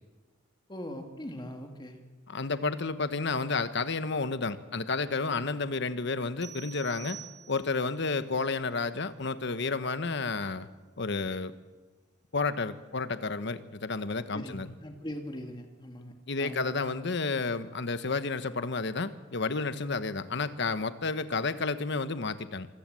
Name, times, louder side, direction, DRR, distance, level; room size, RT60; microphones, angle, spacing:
voice 1, 0.7-2.0 14.3-16.7, equal, 25° left, 4 dB, 2.3 m, -41 dB
voice 2, 2.3-7.2 7.5-10.7 11.0-11.5 12.3-14.7 16.3-22.7, left 4 dB, 65° left, 12 dB, 1.2 m, -31 dB
sound 1, 6.4-7.9, right 9 dB, 20° right, 1.3 m, -46 dB
26.0 x 16.0 x 7.7 m, 1.2 s
head